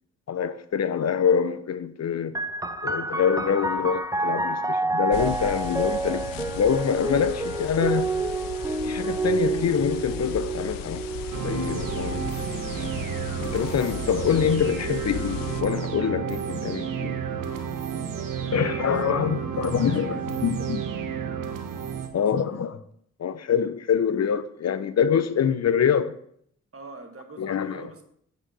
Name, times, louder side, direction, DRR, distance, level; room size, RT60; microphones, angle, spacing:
voice 1, 0.3-2.4 2.8-8.1 8.8-11.0 11.3-12.3 13.4-17.2 18.5-20.8 22.1-22.8 23.2-26.1 27.4-27.9, left 7 dB, 50° left, 0.7 m, -25 dB
sound 1, 2.3-15.6 16.4-17.2, right 3 dB, 10° right, 1.0 m, -30 dB
sound 2, 5.1-15.6, left 8 dB, 90° left, 0.7 m, -37 dB
sound 3, 11.3-22.1, right 7 dB, 75° right, 1.2 m, -31 dB
voice 2, 18.3-20.5 22.1-22.7 26.7-28.0, right 3 dB, 45° right, 1.8 m, -45 dB
8.4 x 5.1 x 6.7 m
supercardioid pair, 45°, 33 cm